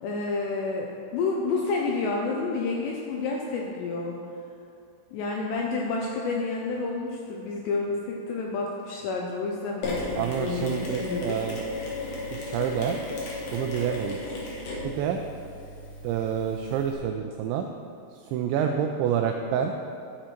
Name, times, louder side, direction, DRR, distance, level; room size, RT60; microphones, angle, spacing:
voice 1, 0.0-4.2 5.1-11.4, left 3 dB, 80° left, -1 dB, 2.5 m, -29 dB
Mechanisms, 9.8-16.9, left 2 dB, 60° left, 3.0 m, -35 dB
voice 2, 10.1-11.7 12.3-13.0 13.5-14.2 14.8-15.2 16.0-17.7 18.1-19.7, right 8 dB, 85° right, 4 dB, 2.6 m, -28 dB
12.0 x 6.3 x 4.4 m, 2.4 s
omnidirectional pair, 5.7 m